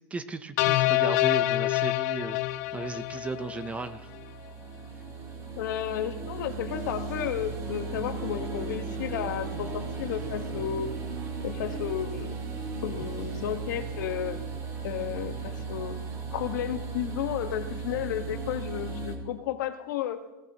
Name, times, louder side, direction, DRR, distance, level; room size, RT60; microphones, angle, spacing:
voice 1, 0.1-2.4 2.7-4.1, right 4 dB, 10° right, 12 dB, 0.5 m, -35 dB
sound 1, 0.6-3.9, left 16 dB, 60° left, 0.5 m, -26 dB
sound 2, 2.2-19.2, right 4 dB, 30° right, 2.2 m, -37 dB
voice 2, 5.6-10.9 11.4-12.3 12.8-14.4 14.8-16.0 16.3-20.2, left 10 dB, 80° left, 8 dB, 1.2 m, -32 dB
sound 3, 7.6-14.3, right 2 dB, 70° right, 3.6 m, -46 dB
18.0 x 13.0 x 2.8 m, 1.0 s
supercardioid pair, 150°, 10 cm